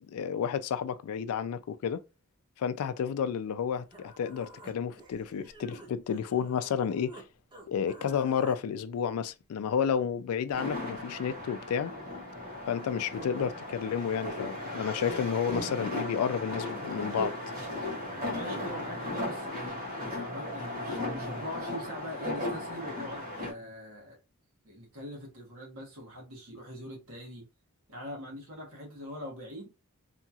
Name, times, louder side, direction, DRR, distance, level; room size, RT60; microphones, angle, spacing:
voice 1, 0.1-2.0 2.6-7.2 7.7-11.9 12.7-17.4, left 7 dB, 80° left, 0.3 m, -31 dB
Human voice, 3.9-7.3 7.5-8.6, right 1 dB, 20° right, 0.7 m, -50 dB
sound 1, 10.5-23.5, left 1 dB, 40° right, 1.4 m, -36 dB
voice 2, 18.2-24.2 24.6-27.4 27.9-29.7, equal, 70° right, 1.2 m, -43 dB
2.8 x 2.3 x 2.7 m
head